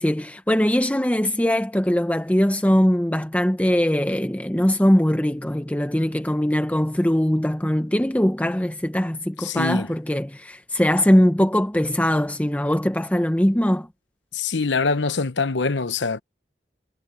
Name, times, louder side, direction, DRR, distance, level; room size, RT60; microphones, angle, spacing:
voice 1, 0.0-13.9, equal, 10° left, 0.8 m, -21 dB
voice 2, 9.4-9.9 14.3-16.2, left 4 dB, 85° left, 1.0 m, -24 dB
head